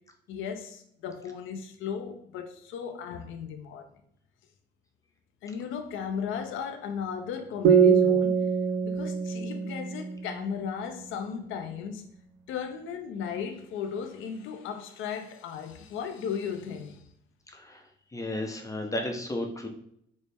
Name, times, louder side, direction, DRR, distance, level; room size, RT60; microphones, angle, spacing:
voice 1, 0.3-3.9 5.4-8.5 8.8-12.1 12.5-17.0, left 7 dB, 85° left, 0.5 m, -36 dB
sound 1, 7.6-11.1, right 7 dB, 75° right, 0.5 m, -24 dB
voice 2, 17.5-19.7, left 1 dB, 15° left, 0.7 m, -34 dB
4.1 x 2.1 x 3.4 m
cardioid pair, 90°, 20 cm